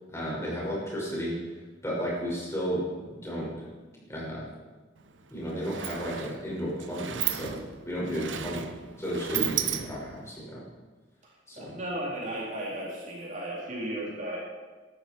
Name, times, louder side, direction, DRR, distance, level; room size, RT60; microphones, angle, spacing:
voice 1, 0.1-1.4 1.8-3.7 4.1-4.5 5.3-7.6 7.8-8.7 9.0-10.6 11.5-11.7, equal, 15° left, -6 dB, 6.3 m, -33 dB
Sliding door, 5.0-5.1 5.4-10.3, right 10 dB, 80° right, 1.0 m, -34 dB
voice 2, 11.6-14.4, right 1 dB, 40° right, -5 dB, 4.0 m, -35 dB
18.5 x 13.0 x 4.8 m, 1.3 s
head